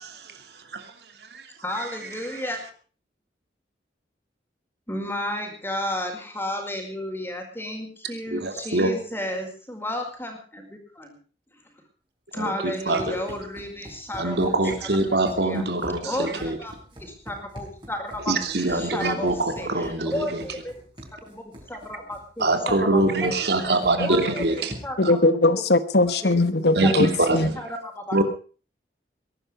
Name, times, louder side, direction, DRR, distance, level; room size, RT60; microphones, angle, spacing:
voice 1, 0.0-2.4 8.3-9.4 12.3-13.2 14.2-16.6 18.3-20.6 22.4-24.7 25.0-25.1 26.7-27.7 28.1-28.2, right 2 dB, 70° right, 7 dB, 2.9 m, -25 dB
voice 2, 1.6-2.6 4.9-11.2 12.3-14.4 15.5-15.6 16.0-18.3 18.7-19.7 20.0-20.7 21.3-23.3 24.0-25.2 25.5-25.6 26.2-26.9 27.6-28.2, left 1 dB, 15° left, 4 dB, 4.8 m, -32 dB
Run, 12.6-25.1, equal, 25° right, 6.1 m, -44 dB
voice 3, 25.0-27.5, left 2 dB, 65° left, 13 dB, 1.1 m, -20 dB
22.0 x 12.0 x 4.9 m, 0.39 s
head